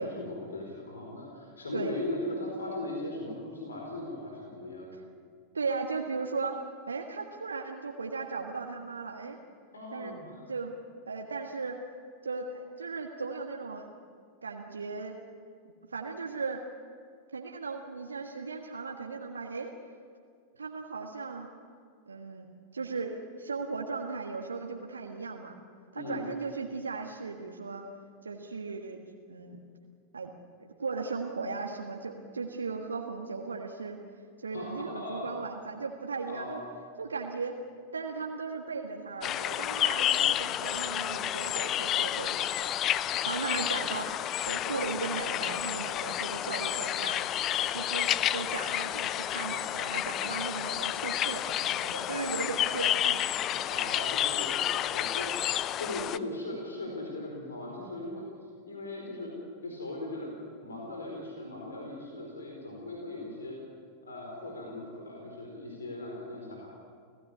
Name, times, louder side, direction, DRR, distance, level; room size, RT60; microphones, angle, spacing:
voice 1, 0.0-4.9 9.7-10.4 26.0-26.2 34.5-35.2 36.3-36.6 53.7-58.2 58.7-59.3 59.6-63.6 64.0-66.7, left 1 dB, 75° left, 0 dB, 4.6 m, -38 dB
voice 2, 5.5-6.6 6.9-9.4 9.9-10.2 10.5-10.7 11.1-11.8 12.2-13.9 14.4-15.2 15.9-16.6 17.3-19.7 20.6-21.5 22.1-22.5 22.7-25.5 25.9-27.9 28.2-29.0 29.3-29.6 30.1-30.3 30.6-34.0 34.4-36.6 37.0-37.6 37.9-42.7 43.2-44.1 44.5-47.2 47.7-53.3, right 4 dB, 75° right, 1 dB, 1.6 m, -37 dB
sound 1, 39.2-56.2, left 11 dB, 30° left, 0.7 m, -30 dB
29.5 x 16.5 x 8.6 m, 2.2 s
figure-of-eight pair, 90°, 0 cm